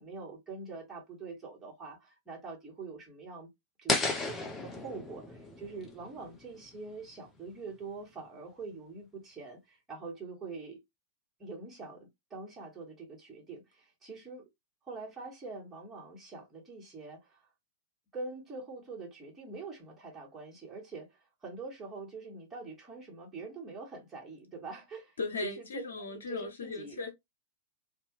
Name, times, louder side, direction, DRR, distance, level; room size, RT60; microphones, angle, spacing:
voice 1, 0.0-3.5 3.8-10.8 11.4-14.4 14.8-17.5 18.1-25.8 26.3-27.0, right 4 dB, 15° right, 1.5 m, -44 dB
sound 1, 3.9-6.9, left 3 dB, 15° left, 0.8 m, -34 dB
voice 2, 25.2-27.1, left 3 dB, 75° left, 1.0 m, -37 dB
2.6 x 2.3 x 3.1 m
figure-of-eight pair, 100°, 0 cm